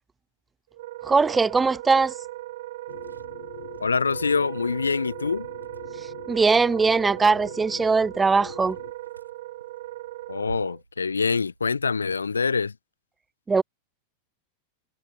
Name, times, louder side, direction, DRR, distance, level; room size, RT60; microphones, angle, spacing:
Wind instrument woodwind instrument, 0.7-10.8, right 16 dB, 55° right, 2.4 m, -38 dB
voice 1, 1.0-2.1 6.3-8.8 13.5-13.6, right 4 dB, 15° right, 0.3 m, -20 dB
Liquid, 1.1-12.2, right 3 dB, 80° right, 5.5 m, -52 dB
sound 1, 2.9-8.9, left 12 dB, 60° left, 1.7 m, -45 dB
voice 2, 3.8-5.5 10.3-12.7, left 5 dB, 75° left, 0.4 m, -25 dB
figure-of-eight pair, 90°, 0 cm